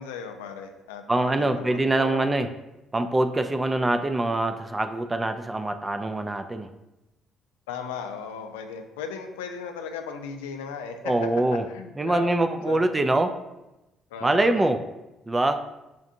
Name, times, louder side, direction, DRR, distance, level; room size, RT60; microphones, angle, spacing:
voice 1, 0.0-2.4 7.7-11.1 11.5-12.4 12.7-12.8 14.1-14.6, left 6 dB, 85° left, 6 dB, 0.3 m, -36 dB
voice 2, 1.1-2.5 2.9-6.7 11.0-11.7 12.0-13.4 14.2-14.8 15.3-15.6, right 2 dB, 20° right, 8 dB, 0.3 m, -24 dB
5.0 x 2.5 x 2.6 m, 0.98 s
hypercardioid pair, 55°, 0 cm